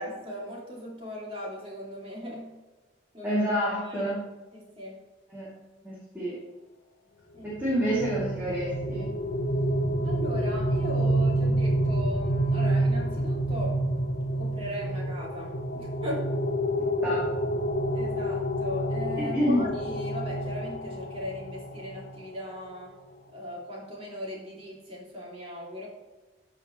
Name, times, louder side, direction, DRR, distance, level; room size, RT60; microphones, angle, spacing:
voice 1, 0.0-2.5 3.1-3.4 3.8-4.1 4.5-5.0 7.3-7.5 10.0-13.8 14.3-16.3 17.9-23.0 23.3-25.9, left 1 dB, 30° right, -3 dB, 2.6 m, -38 dB
voice 2, 3.2-4.2 5.3-5.5 5.8-6.4 7.6-9.1 17.0-17.3 19.3-19.6, equal, 10° right, -9 dB, 2.5 m, -27 dB
sound 1, 7.5-22.2, right 1 dB, 55° left, 0.8 m, -28 dB
13.5 x 4.8 x 3.1 m, 1.2 s
head